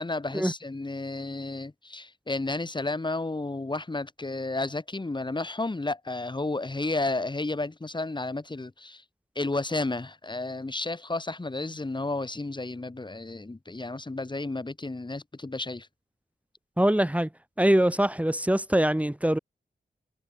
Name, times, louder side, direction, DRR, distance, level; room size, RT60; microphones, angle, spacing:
voice 1, 0.0-9.0 9.4-15.9, left 2 dB, 30° left, 5.3 m, -32 dB
voice 2, 16.8-17.3 17.6-19.4, right 1 dB, 10° right, 4.5 m, -23 dB
wide cardioid pair, 95°, 17 cm